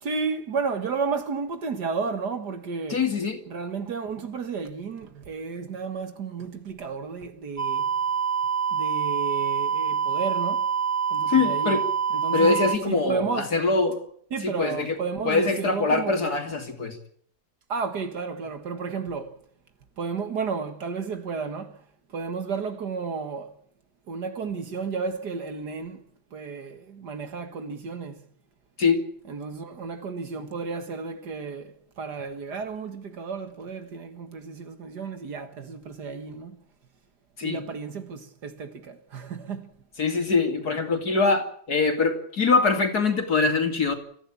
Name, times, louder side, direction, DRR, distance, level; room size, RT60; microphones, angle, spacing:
voice 1, 0.0-3.0 3.5-7.9 8.7-10.7 11.1-11.8 12.1-13.6 14.3-16.3 17.7-19.4 20.0-23.5 24.1-26.0 26.3-28.2 29.3-36.6 37.4-39.7, right 5 dB, 60° right, 2.1 m, -32 dB
voice 2, 2.9-3.4 11.3-11.8 12.3-14.0 14.4-14.9 15.3-17.0 28.8-29.0 37.4-37.6 40.0-43.9, left 4 dB, 55° left, 3.4 m, -23 dB
sound 1, 7.6-12.8, right 7 dB, 15° right, 0.7 m, -26 dB
28.5 x 15.0 x 8.7 m
omnidirectional pair, 2.1 m